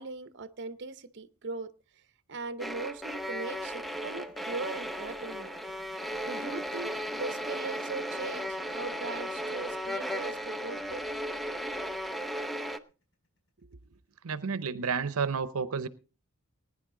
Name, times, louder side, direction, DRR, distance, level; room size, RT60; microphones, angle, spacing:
voice 1, 0.0-1.7 2.3-5.5 6.3-11.0 13.6-13.8, right 3 dB, 55° right, 0.8 m, -40 dB
sound 1, 2.6-12.8, equal, ahead, 0.6 m, -36 dB
sound 2, 3.8-14.0, left 1 dB, 65° left, 4.9 m, -59 dB
voice 2, 14.2-15.9, right 5 dB, 90° right, 0.7 m, -31 dB
19.5 x 9.9 x 3.8 m
head